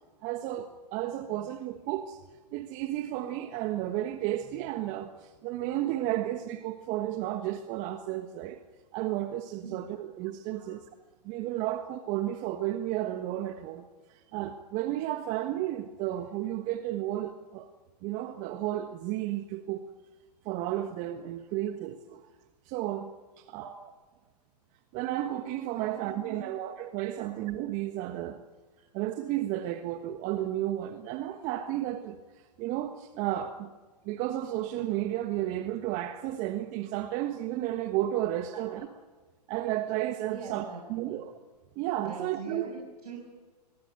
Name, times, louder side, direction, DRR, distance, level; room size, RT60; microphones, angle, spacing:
voice 1, 0.2-2.2 2.5-8.6 8.9-10.8 11.2-17.7 18.0-19.8 20.4-22.3 22.6-23.1 23.4-23.7 24.9-28.4 28.9-33.7 34.0-38.9 39.5-41.3 41.7-42.7, right 13 dB, 35° right, 1.5 m, -33 dB
voice 2, 25.8-26.5 27.2-27.3 28.8-28.9 38.5-38.8 40.3-41.2 42.0-43.2, right 5 dB, 65° right, 6.7 m, -43 dB
25.0 x 22.5 x 7.9 m
hypercardioid pair, 120°, 21 cm